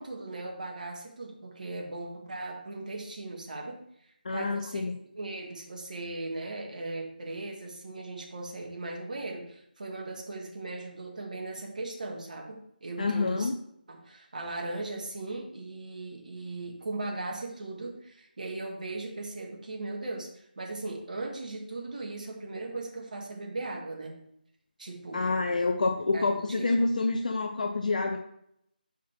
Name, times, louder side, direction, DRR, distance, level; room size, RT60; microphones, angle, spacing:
voice 1, 0.0-3.8 4.3-13.5 13.9-24.1 24.8-25.2 26.1-26.7, right 2 dB, 55° right, 0 dB, 1.7 m, -38 dB
voice 2, 4.2-4.9 13.0-13.6 25.1-28.2, left 3 dB, 50° left, 4 dB, 0.6 m, -27 dB
5.8 x 4.8 x 5.7 m, 0.74 s
figure-of-eight pair, 160°, 5 cm